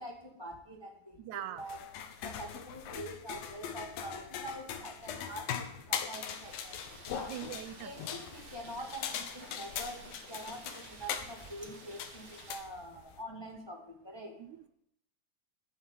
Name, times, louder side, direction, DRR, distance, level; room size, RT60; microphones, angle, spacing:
voice 1, 0.0-1.8 2.2-7.3 7.8-14.4, right 1 dB, 20° left, 2 dB, 0.7 m, -45 dB
voice 2, 1.2-1.6 7.3-7.9 14.4-14.7, right 12 dB, 80° right, 13 dB, 1.8 m, -42 dB
sound 1, 1.6-13.2, left 8 dB, 90° left, 2.9 m, -41 dB
Rain, 6.1-12.5, right 3 dB, 40° right, 3.0 m, -53 dB
12.5 x 9.6 x 8.4 m, 0.73 s
omnidirectional pair, 4.0 m